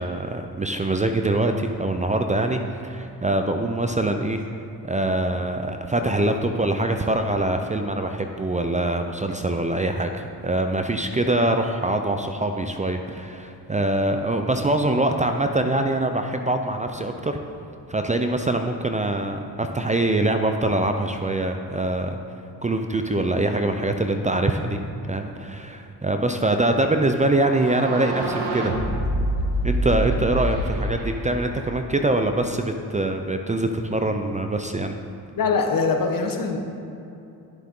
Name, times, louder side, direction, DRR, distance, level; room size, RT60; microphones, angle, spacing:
voice 1, 0.0-4.4 4.8-17.4 17.9-22.2 22.6-24.8 25.1-28.7 29.6-34.9, right 2 dB, 15° right, 6 dB, 0.6 m, -24 dB
sound 1, 27.3-32.2, right 1 dB, 70° right, 1.4 m, -27 dB
voice 2, 35.4-36.6, left 4 dB, 50° left, 4 dB, 1.2 m, -22 dB
11.0 x 7.4 x 3.8 m, 2.7 s
supercardioid pair, 60°, 42 cm